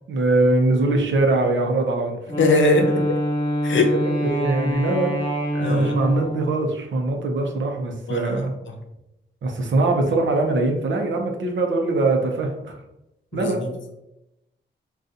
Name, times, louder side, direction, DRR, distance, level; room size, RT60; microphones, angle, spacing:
voice 1, 0.1-2.2 4.0-5.1 5.6-8.5 9.4-12.7 13.3-13.6, right 2 dB, 75° right, 2 dB, 0.7 m, -22 dB
Wind instrument woodwind instrument, 2.3-6.6, equal, 20° left, 0.8 m, -25 dB
voice 2, 2.4-3.2 3.6-3.9 5.5-5.9 8.1-8.4 8.7-8.8 13.3-13.7, left 3 dB, 80° left, 3 dB, 0.6 m, -21 dB
4.0 x 2.3 x 2.4 m, 0.91 s
wide cardioid pair, 160°, 20 cm